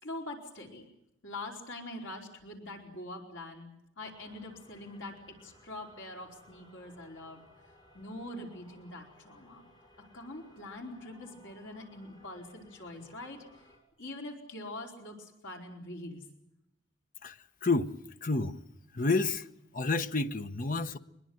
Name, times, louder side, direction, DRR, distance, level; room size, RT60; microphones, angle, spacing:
voice 1, 0.0-0.8 1.2-3.7 4.0-7.5 7.9-9.6 10.1-13.7 14.0-16.3, left 2 dB, 75° left, 4.6 m, -44 dB
sound 1, 4.0-13.8, left 1 dB, 20° left, 7.6 m, -60 dB
voice 2, 17.2-17.9 18.2-18.6 18.9-19.5 19.7-21.0, left 3 dB, 45° left, 0.9 m, -29 dB
24.0 x 21.5 x 7.9 m
head